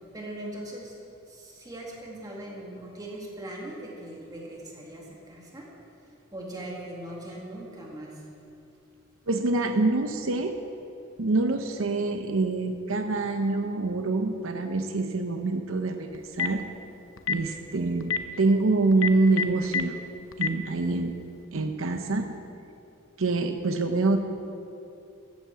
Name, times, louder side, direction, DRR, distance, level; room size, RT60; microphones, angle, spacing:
voice 1, 0.1-1.0 1.3-5.7 6.3-8.2, right 1 dB, 20° right, -3 dB, 1.9 m, -40 dB
voice 2, 9.3-10.6 11.2-16.6 17.3-20.0 20.4-21.1 21.5-22.3 23.2-24.2, right 3 dB, 75° right, 6 dB, 0.8 m, -26 dB
Telephone, 16.1-16.6 17.2-17.4 18.0-18.2 18.9-19.8 20.3-20.5, left 7 dB, 80° left, 0.8 m, -26 dB
14.0 x 8.3 x 7.5 m, 2.8 s
head